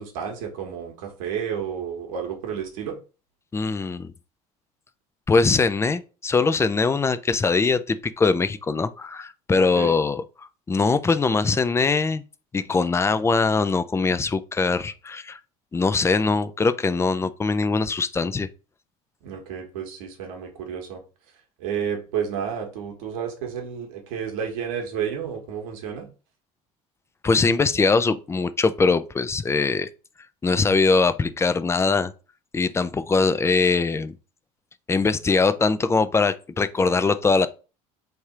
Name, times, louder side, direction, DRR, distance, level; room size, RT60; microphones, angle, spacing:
voice 1, 0.0-2.9 9.8-9.9 19.2-21.0 21.6-26.1, right 8 dB, 70° right, 1.3 m, -31 dB
voice 2, 3.5-4.1 5.3-10.2 10.7-12.2 12.5-15.4 15.7-18.5 27.2-29.9 30.4-32.1 32.5-34.1 34.9-37.5, left 4 dB, 15° left, 0.4 m, -22 dB
3.3 x 2.7 x 4.6 m
hypercardioid pair, 75°, 18 cm